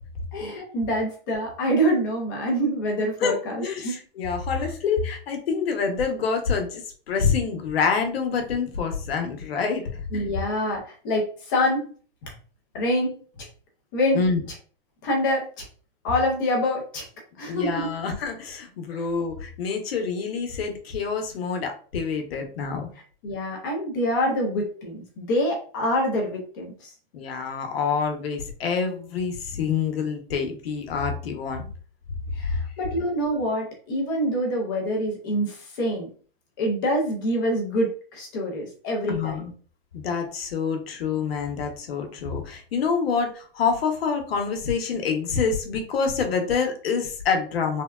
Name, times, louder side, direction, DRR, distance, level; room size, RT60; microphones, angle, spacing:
voice 1, 0.3-4.0 4.5-4.7 10.1-11.8 12.2-12.3 12.7-13.5 13.9-14.2 15.0-15.7 16.0-17.1 17.4-17.9 18.9-19.1 23.2-26.9 32.3-36.1 36.6-39.4, equal, 20° left, -1 dB, 0.4 m, -26 dB
voice 2, 3.6-10.2 14.1-14.4 17.4-22.9 27.1-31.7 39.1-39.5 39.9-47.8, left 5 dB, 85° left, 4 dB, 0.9 m, -27 dB
3.3 x 2.2 x 2.3 m, 0.42 s
supercardioid pair, 175°, 29 cm